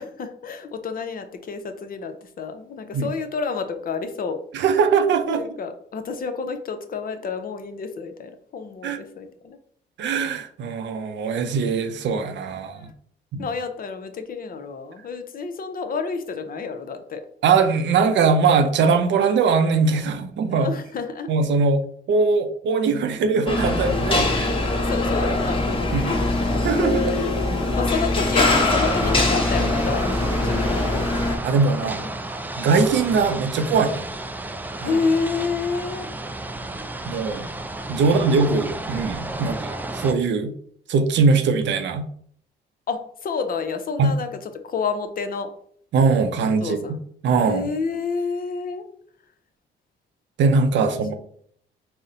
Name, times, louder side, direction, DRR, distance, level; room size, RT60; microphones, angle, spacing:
voice 1, 0.0-4.4 5.3-9.6 12.8-12.9 13.4-17.2 20.5-21.3 24.5-26.5 27.1-30.1 30.4-31.1 31.8-32.1 34.8-36.1 38.0-38.1 39.4-39.7 42.9-45.5 46.6-47.0 47.5-48.9 50.8-51.1, left 5 dB, 45° left, 8 dB, 0.6 m, -29 dB
voice 2, 4.5-5.4 8.8-9.0 10.0-12.9 13.3-13.4 17.4-20.7 21.3-21.8 22.1-24.5 25.9-26.2 26.6-27.1 29.6-29.7 30.5-30.6 31.4-32.0 32.6-34.1 34.8-35.0 37.1-37.5 37.9-39.5 39.9-40.5 40.9-42.1 44.0-44.1 45.9-46.8 47.2-47.7 50.4-51.1, right 4 dB, 65° right, 8 dB, 0.5 m, -21 dB
sound 1, 23.5-31.4, left 2 dB, 25° left, 0.9 m, -22 dB
sound 2, 28.5-40.1, right 2 dB, 10° right, 0.3 m, -32 dB
4.0 x 2.1 x 3.8 m, 0.62 s
cardioid pair, 90°, 20 cm